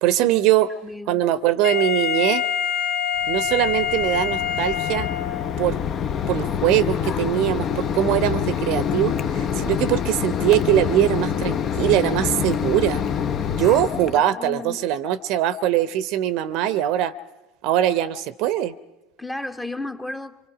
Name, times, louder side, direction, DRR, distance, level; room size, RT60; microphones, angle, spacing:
voice 1, 0.0-0.7 1.1-2.4 3.3-5.1 5.6-5.8 6.3-13.0 13.5-17.1 17.6-18.7, right 12 dB, 55° right, 0.7 m, -22 dB
voice 2, 0.8-1.2 13.7-14.8 19.2-20.4, left 2 dB, 10° left, 0.9 m, -34 dB
Wind instrument woodwind instrument, 1.6-5.6, left 8 dB, 55° left, 2.5 m, -25 dB
Mechanisms, 3.2-14.2, left 8 dB, 40° left, 0.7 m, -26 dB
25.0 x 24.0 x 4.9 m
hypercardioid pair, 75°, 0 cm